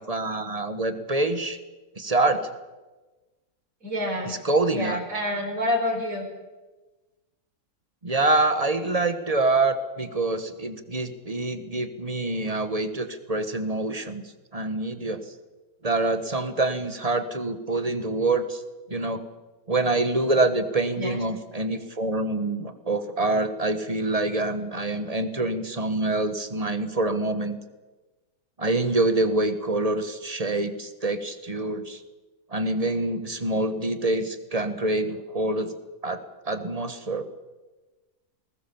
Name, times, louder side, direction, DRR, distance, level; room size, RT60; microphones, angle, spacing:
voice 1, 0.1-1.6 2.0-2.5 4.2-5.0 8.0-14.2 14.5-15.2 15.8-18.6 18.9-19.2 19.7-27.6 28.6-32.0 32.5-35.7 36.0-36.2 36.5-37.2, right 2 dB, 25° right, 10 dB, 1.3 m, -26 dB
voice 2, 3.8-4.4 4.7-6.3 21.0-21.2, left 1 dB, 55° right, 1 dB, 5.2 m, -28 dB
20.5 x 19.5 x 7.1 m, 1.2 s
omnidirectional pair, 1.7 m